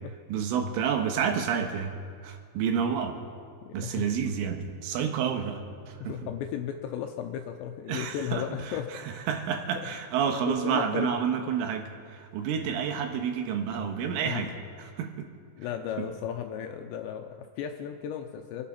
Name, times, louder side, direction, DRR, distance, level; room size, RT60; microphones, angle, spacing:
voice 1, 0.3-2.0 2.2-3.2 3.7-6.1 7.9-8.8 9.3-14.5 14.8-15.3, right 7 dB, 80° right, 5 dB, 3.7 m, -29 dB
voice 2, 3.6-4.1 6.0-8.9 10.5-11.2 14.2-14.5 15.6-18.6, left 9 dB, 80° left, 4 dB, 2.7 m, -35 dB
27.0 x 9.1 x 5.8 m, 2.1 s
omnidirectional pair, 5.7 m